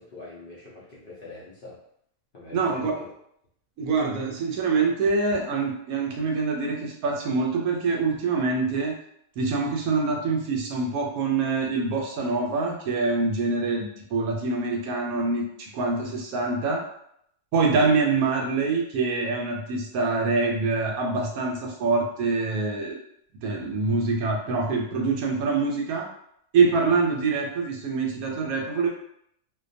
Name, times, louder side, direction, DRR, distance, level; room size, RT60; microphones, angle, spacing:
voice 1, 0.0-1.8 2.3-3.1 17.7-17.8, left 3 dB, 60° left, -8 dB, 0.6 m, -44 dB
voice 2, 2.5-2.9 3.8-9.0 9.4-16.8 17.5-23.0 23.4-26.1 26.5-28.9, right 4 dB, 75° right, 0 dB, 1.0 m, -25 dB
2.5 x 2.2 x 2.5 m, 0.71 s
omnidirectional pair, 1.6 m